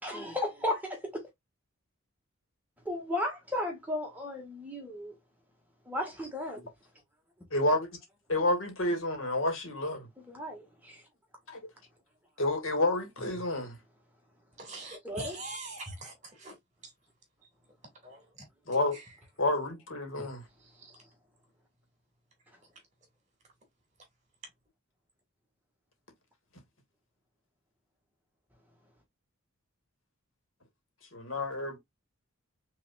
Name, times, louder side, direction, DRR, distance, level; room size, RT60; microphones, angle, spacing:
voice 1, 0.0-1.3 2.8-5.1 5.8-6.6 10.3-11.0 15.0-15.4 20.1-20.3 20.9-21.0, left 1 dB, 10° right, 1.8 m, -35 dB
voice 2, 7.5-7.9 8.3-10.1 11.5-11.6 12.4-13.8 18.7-19.0 19.4-20.4 31.1-31.8, left 2 dB, 70° left, 2.2 m, -29 dB
voice 3, 14.6-16.5 18.0-18.2, right 2 dB, 35° right, 2.6 m, -42 dB
5.6 x 3.4 x 2.5 m
head